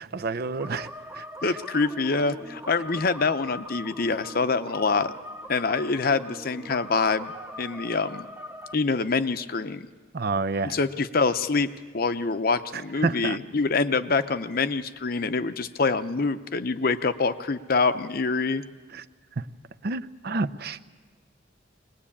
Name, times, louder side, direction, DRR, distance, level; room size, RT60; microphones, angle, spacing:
voice 1, 0.0-1.6 10.1-10.8 12.7-13.4 18.9-19.0 19.4-19.5 19.8-20.8, right 3 dB, 55° right, 11 dB, 0.6 m, -29 dB
sound 1, 0.6-8.7, left 1 dB, 10° right, 0.8 m, -41 dB
voice 2, 1.4-5.1 5.5-7.3 7.6-8.3 8.7-9.9 10.6-11.7 11.9-18.6, left 4 dB, 50° left, 12 dB, 0.7 m, -25 dB
22.5 x 20.0 x 8.6 m, 1.5 s
head